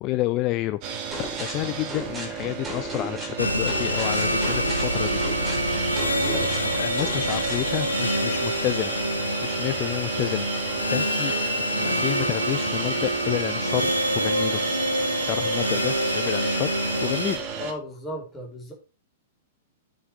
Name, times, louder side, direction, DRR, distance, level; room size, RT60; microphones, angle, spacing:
voice 1, 0.0-5.2 6.3-8.9 9.4-11.3 11.8-14.6 15.3-16.7 17.0-17.4, left 17 dB, 35° left, 15 dB, 0.5 m, -30 dB
sound 1, 0.8-17.7, right 6 dB, 35° right, 2.6 m, -33 dB
sound 2, 1.1-7.7, right 1 dB, 10° right, 4.2 m, -36 dB
sound 3, 3.4-17.4, equal, 90° left, 1.6 m, -26 dB
voice 2, 17.5-18.7, equal, 15° left, -1 dB, 4.6 m, -35 dB
9.4 x 6.2 x 5.1 m, 0.32 s
figure-of-eight pair, 105°, 0 cm